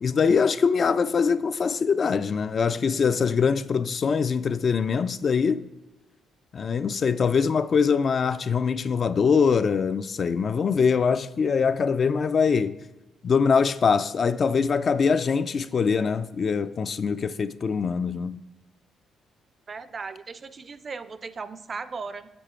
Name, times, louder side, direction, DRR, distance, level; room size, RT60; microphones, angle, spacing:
voice 1, 0.0-5.6 6.5-12.7 13.2-18.4, left 5 dB, 45° left, 0.3 m, -23 dB
voice 2, 19.7-22.3, right 4 dB, 40° right, 0.4 m, -37 dB
7.0 x 6.5 x 4.3 m
cardioid pair, 90°, 0 cm